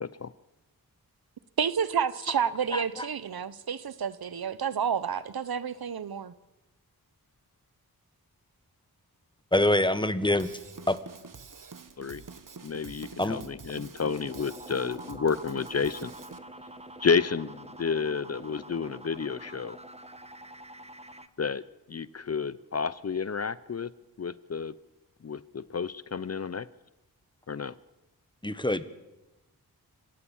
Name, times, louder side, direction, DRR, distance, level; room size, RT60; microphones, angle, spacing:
voice 1, 1.6-6.3, right 7 dB, 70° right, 0.9 m, -30 dB
voice 2, 2.7-3.1 9.5-10.5 10.9-11.0 13.2-13.4 28.4-28.8, left 1 dB, 10° left, 1.3 m, -25 dB
Drum kit / Drum, 10.4-16.4, right 5 dB, 55° right, 1.5 m, -47 dB
voice 3, 12.6-16.1 17.0-19.8 21.4-21.6 21.9-23.9 24.2-24.7 25.2-26.7 27.5-27.7, left 5 dB, 40° left, 0.6 m, -30 dB
sound 1, 14.0-21.3, right 1 dB, 15° right, 1.3 m, -46 dB
26.0 x 15.5 x 7.3 m
cardioid pair, 60°, 38 cm